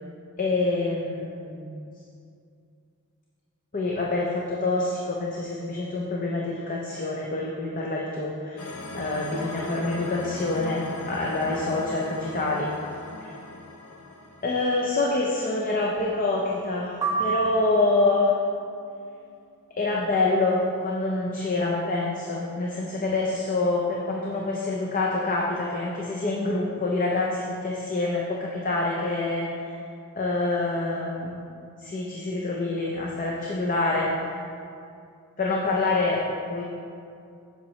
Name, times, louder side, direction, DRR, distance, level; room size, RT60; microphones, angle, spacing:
voice 1, 0.4-1.8 3.7-12.7 13.2-13.3 14.4-18.4 19.8-29.8 30.1-31.4 31.8-34.4 35.4-36.6, left 2 dB, 35° left, -2 dB, 0.6 m, -26 dB
sound 1, 8.6-15.7, left 2 dB, 80° left, 0.8 m, -38 dB
sound 2, 17.0-18.3, right 4 dB, 15° right, 0.7 m, -29 dB
7.4 x 6.9 x 3.2 m, 2.5 s
head